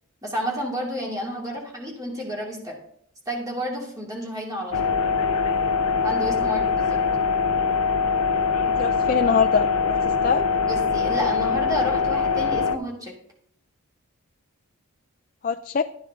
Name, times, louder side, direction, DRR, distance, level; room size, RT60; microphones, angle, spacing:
voice 1, 0.2-2.8 3.3-5.0 6.0-7.0 10.7-13.1, equal, 15° right, -2 dB, 2.5 m, -30 dB
sound 1, 4.7-12.8, left 5 dB, 80° left, 0.7 m, -23 dB
voice 2, 8.7-10.4 15.4-15.8, left 6 dB, 40° left, 6 dB, 0.4 m, -24 dB
12.5 x 9.4 x 3.7 m, 0.68 s
head